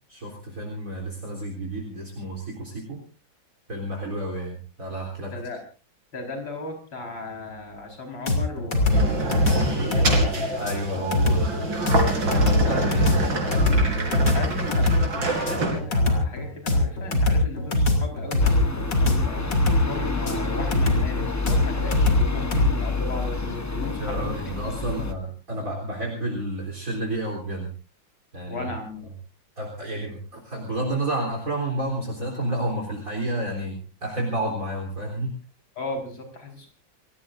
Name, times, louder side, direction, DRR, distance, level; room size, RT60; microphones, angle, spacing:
voice 1, 0.1-3.0 3.7-5.3 10.6-11.6 12.3-13.4 24.0-27.7 28.3-28.7 29.6-35.3, right 1 dB, 40° right, 1 dB, 4.2 m, -30 dB
voice 2, 6.1-10.1 12.7-12.9 14.3-19.4 19.9-24.6 28.5-29.0 35.8-36.7, left 2 dB, 75° left, 3 dB, 5.6 m, -36 dB
sound 1, 8.3-22.7, left 1 dB, 60° left, 3.5 m, -22 dB
sound 2, 8.9-15.8, right 2 dB, 70° right, 4.5 m, -26 dB
sound 3, 18.4-25.1, left 3 dB, 25° left, 0.4 m, -29 dB
28.5 x 17.5 x 2.6 m, 0.34 s
omnidirectional pair, 2.2 m